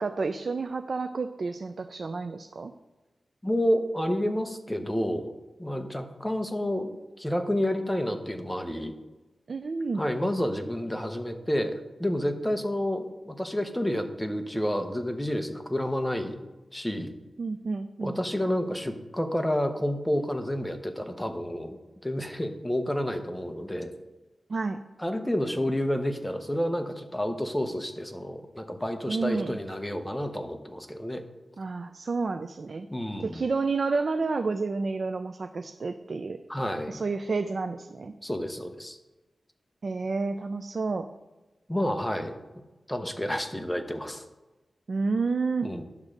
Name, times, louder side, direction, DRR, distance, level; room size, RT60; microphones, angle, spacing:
voice 1, 0.0-2.7 9.5-10.0 17.4-18.2 24.5-24.8 29.1-29.6 31.6-32.9 33.2-36.4 36.9-38.1 39.8-41.1 44.9-45.7, right 4 dB, 55° right, 8 dB, 0.4 m, -30 dB
voice 2, 3.4-5.3 5.6-6.9 7.2-8.9 10.0-11.7 12.0-16.4 16.7-17.1 18.0-23.9 25.0-31.2 32.9-33.4 36.5-37.0 38.2-39.0 41.7-42.4 42.9-44.2 45.6-45.8, equal, 5° left, 6 dB, 0.8 m, -29 dB
10.5 x 3.7 x 6.5 m, 1.1 s
wide cardioid pair, 105°, 0 cm